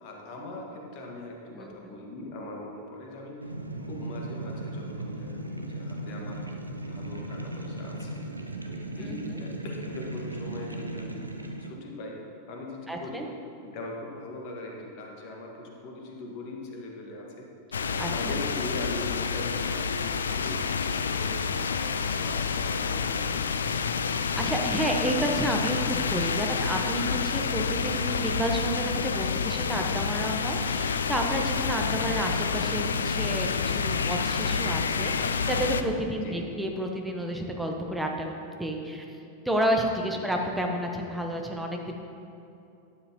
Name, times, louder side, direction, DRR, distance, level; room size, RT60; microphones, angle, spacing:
voice 1, 0.0-3.5 3.9-8.2 8.6-11.2 11.6-13.3 13.6-17.5 17.9-23.9 36.1-36.4 40.1-40.2, left 1 dB, 45° left, 0 dB, 1.7 m, -41 dB
voice 2, 1.5-1.9 9.0-9.3 12.9-13.3 18.0-18.4 24.4-39.0 39.4-41.9, right 1 dB, 5° right, 1 dB, 1.1 m, -30 dB
sound 1, 3.4-11.7, right 1 dB, 85° right, 0.6 m, -37 dB
sound 2, 17.7-35.8, left 5 dB, 70° left, 0.4 m, -28 dB
12.0 x 9.7 x 3.0 m, 2.8 s
figure-of-eight pair, 90°, 0 cm